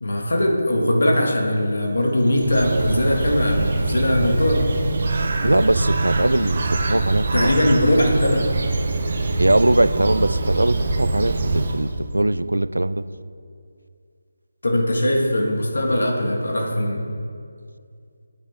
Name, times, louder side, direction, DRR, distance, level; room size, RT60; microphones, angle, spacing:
voice 1, 0.0-4.7 7.3-8.5 14.6-17.1, left 1 dB, 70° left, 0 dB, 1.6 m, -20 dB
Bird, 2.1-12.1, right 2 dB, 45° right, 0.8 m, -24 dB
voice 2, 5.4-7.5 9.4-13.1, right 1 dB, 85° right, 15 dB, 0.3 m, -21 dB
8.8 x 8.4 x 3.5 m, 2.3 s
figure-of-eight pair, 160°, 0 cm